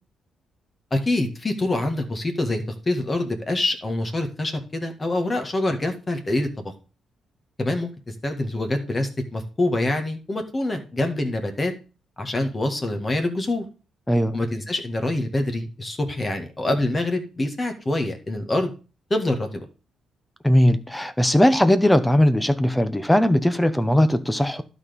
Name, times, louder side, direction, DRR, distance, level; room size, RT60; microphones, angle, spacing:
voice 1, 0.9-6.7 7.6-11.7 12.2-13.7 14.3-18.7 19.1-19.7, left 2 dB, 25° left, 1.8 m, -25 dB
voice 2, 20.4-24.6, left 1 dB, 5° left, 0.8 m, -19 dB
12.0 x 4.2 x 5.2 m
cardioid pair, 110°, 0 cm